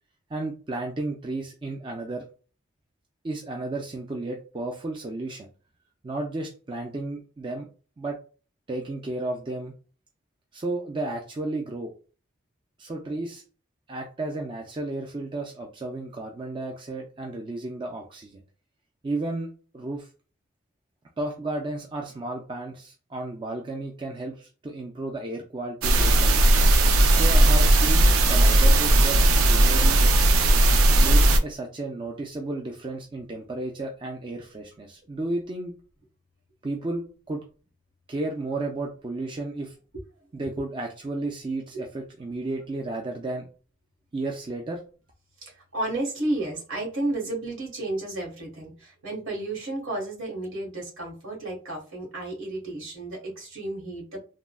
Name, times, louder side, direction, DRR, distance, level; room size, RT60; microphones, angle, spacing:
voice 1, 0.3-2.2 3.2-5.5 6.0-7.7 8.0-8.2 8.7-9.7 10.5-11.9 12.8-13.4 13.9-18.4 19.0-20.1 21.2-26.4 27.1-30.0 31.0-35.7 36.6-37.4 38.1-39.7 40.3-43.5 44.1-44.8, right 2 dB, 25° right, 1 dB, 0.3 m, -33 dB
sound 1, 25.8-31.4, right 1 dB, 90° right, 0.4 m, -17 dB
voice 2, 45.4-54.2, right 2 dB, 70° right, -1 dB, 1.4 m, -32 dB
3.5 x 2.1 x 2.2 m, 0.37 s
head